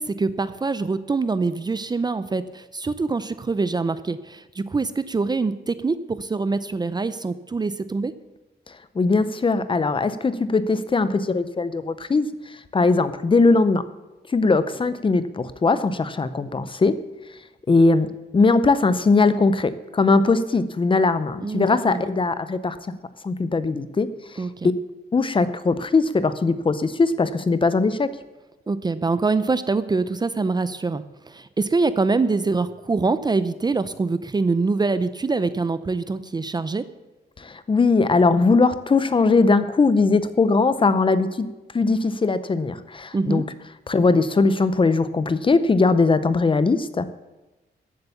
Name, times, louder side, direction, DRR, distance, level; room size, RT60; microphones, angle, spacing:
voice 1, 0.0-8.2 21.4-22.0 24.4-24.7 28.7-36.9 43.1-43.4, right 3 dB, 25° right, 14 dB, 0.6 m, -24 dB
voice 2, 8.7-13.8 14.3-17.0 17.7-18.1 18.3-22.9 23.2-24.1 25.1-28.1 37.4-41.5 41.7-43.4 43.9-47.0, left 3 dB, 30° left, 13 dB, 0.7 m, -20 dB
14.0 x 8.0 x 7.0 m, 1.1 s
wide cardioid pair, 135°, 18 cm